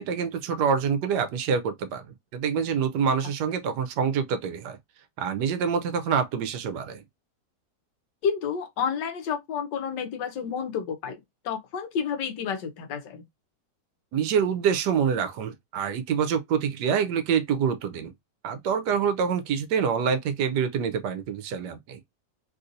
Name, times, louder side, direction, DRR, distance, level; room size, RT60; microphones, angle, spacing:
voice 1, 0.0-2.1 2.3-4.8 5.2-7.0 14.1-18.1 18.4-22.0, right 7 dB, 75° right, 1.2 m, -26 dB
voice 2, 8.2-11.2 11.4-13.2, left 7 dB, 80° left, 1.4 m, -30 dB
3.4 x 2.5 x 2.6 m
omnidirectional pair, 1.9 m